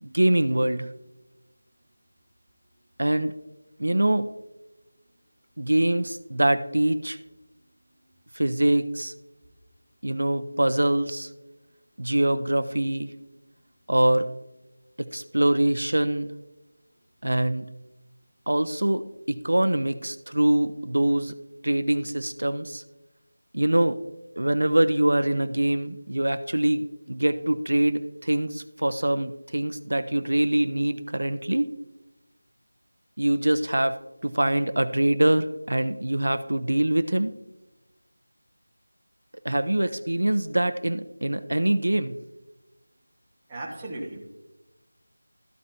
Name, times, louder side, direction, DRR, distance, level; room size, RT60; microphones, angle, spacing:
voice 1, 0.0-0.9 3.0-3.3 3.8-4.3 5.6-7.2 8.3-9.1 10.0-11.3 12.0-13.1 13.9-14.3 15.0-16.3 17.2-17.7 18.5-21.4 21.6-22.8 23.5-24.0 24.4-31.7 33.2-37.3 39.4-42.2, right 1 dB, 85° right, 12 dB, 0.6 m, -24 dB
voice 2, 43.5-44.3, right 1 dB, 10° right, -4 dB, 1.3 m, -36 dB
13.5 x 7.8 x 2.7 m, 1.0 s
figure-of-eight pair, 175°, 0 cm